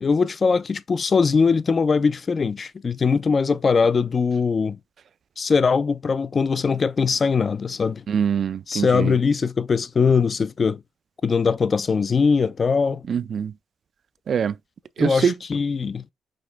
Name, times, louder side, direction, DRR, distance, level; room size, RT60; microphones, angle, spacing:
voice 1, 0.0-4.8 5.4-8.0 8.7-10.8 11.2-13.0 15.0-16.0, left 5 dB, 35° left, 0.3 m, -21 dB
voice 2, 8.1-9.1 13.1-13.5 14.3-14.5 15.0-15.3, right 7 dB, 55° right, 0.3 m, -23 dB
5.2 x 2.9 x 3.4 m
cardioid pair, 90°, 0 cm